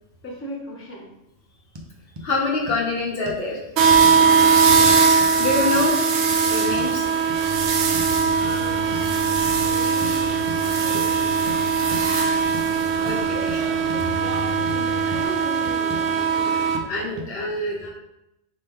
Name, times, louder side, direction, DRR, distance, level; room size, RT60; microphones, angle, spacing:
voice 1, 0.2-1.1 3.9-4.5 8.3-11.6 12.7-17.9, equal, 15° left, -2 dB, 0.6 m, -39 dB
sound 1, 1.7-1.9 2.2-2.3 2.7-2.8 3.3-3.5 4.0-4.2 4.9-5.4 5.8-5.9 6.8-6.9 7.3-7.4 7.9-8.1 8.4-8.6 8.9-9.1 9.4-9.6 10.0-10.1 10.5-10.6 10.9-11.1 11.5-11.6 11.9-12.1 12.5-12.7 13.1-13.2 13.5-13.6 13.9-14.0 14.3-14.8 15.1-15.2 15.6-16.1 16.7-16.9 17.2-17.3, equal, 45° right, 0.3 m, -36 dB
voice 2, 2.2-3.6 5.4-7.0 10.9-11.0 12.1-12.5 13.0-13.6 16.9-17.9, left 3 dB, 55° left, -1 dB, 1.0 m, -26 dB
sound 2, 3.8-16.8, right 6 dB, 70° right, 0.8 m, -20 dB
sound 3, 7.4-15.3, left 4 dB, 80° left, 1.1 m, -37 dB
4.4 x 3.1 x 3.5 m, 0.86 s
omnidirectional pair, 1.3 m